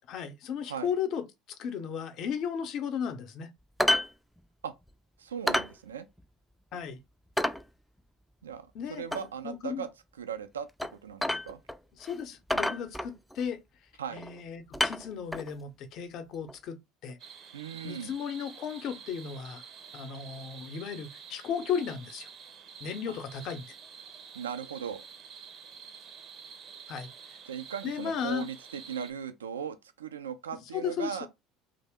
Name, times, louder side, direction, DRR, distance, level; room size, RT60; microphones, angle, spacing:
voice 1, 0.1-1.2 1.6-3.5 6.7-7.0 8.7-9.0 9.4-9.9 11.9-13.6 14.1-17.2 17.8-19.6 19.9-22.3 22.8-23.6 26.9-27.1 27.8-28.5 30.7-31.2, left 7 dB, 55° left, 0.6 m, -35 dB
sound 1, 3.8-4.1 4.4-4.5 4.9-5.0 5.5-5.7 6.2-6.3 6.7-6.8 7.4-7.6 9.1-9.3 10.8-10.9 11.2-11.8 12.0-12.1 12.5-13.4 14.2-14.4 14.7-15.5 16.5-16.6, left 1 dB, ahead, 0.3 m, -29 dB
voice 2, 5.2-6.1 8.4-9.9 10.2-10.7 11.0-11.6 14.0-14.2 17.5-18.1 23.1-23.2 24.3-25.0 27.5-31.3, right 7 dB, 90° right, 0.3 m, -38 dB
sound 2, 17.2-29.1, right 7 dB, 50° right, 0.6 m, -48 dB
2.7 x 2.1 x 3.4 m
hypercardioid pair, 70°, 0 cm